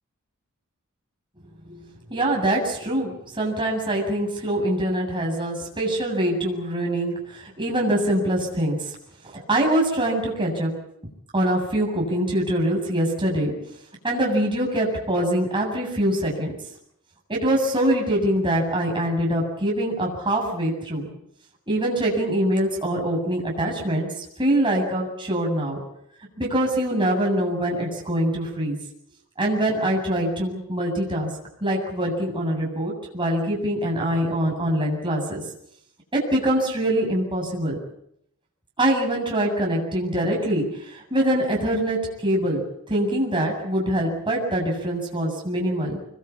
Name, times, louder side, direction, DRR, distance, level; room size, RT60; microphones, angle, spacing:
voice 1, 2.1-9.0 9.3-10.7 11.3-13.5 14.0-16.5 17.3-21.1 21.7-25.8 26.4-28.8 29.4-31.3 31.6-35.4 36.1-37.8 38.8-42.6 42.9-46.0, right 1 dB, 25° right, -1 dB, 7.7 m, -24 dB
26.0 x 21.5 x 8.5 m, 0.74 s
head